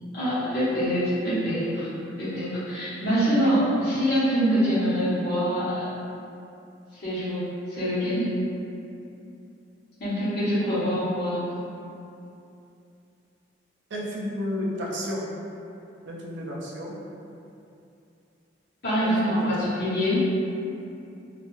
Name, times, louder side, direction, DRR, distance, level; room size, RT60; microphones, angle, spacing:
voice 1, 0.1-1.9 2.2-5.8 7.0-8.3 10.0-11.5 18.8-20.3, equal, 55° left, -14 dB, 0.9 m, -25 dB
voice 2, 13.9-15.2 16.0-16.9 19.0-19.4 19.7-19.8, left 1 dB, 70° right, -4 dB, 0.5 m, -32 dB
2.3 x 2.1 x 3.0 m, 2.7 s
head